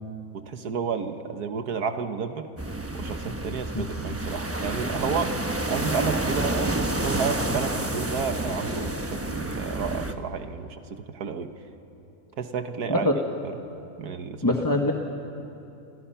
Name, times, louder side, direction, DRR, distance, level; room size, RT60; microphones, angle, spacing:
voice 1, 0.4-2.5 2.9-5.3 5.7-11.5 12.4-13.1 14.0-14.6, right 6 dB, 70° right, 8 dB, 1.6 m, -31 dB
sound 1, 2.6-10.1, right 1 dB, 10° right, 0.7 m, -29 dB
voice 2, 14.4-14.9, left 1 dB, 15° left, 1 dB, 1.1 m, -23 dB
30.0 x 24.5 x 5.8 m, 2.8 s
omnidirectional pair, 1.7 m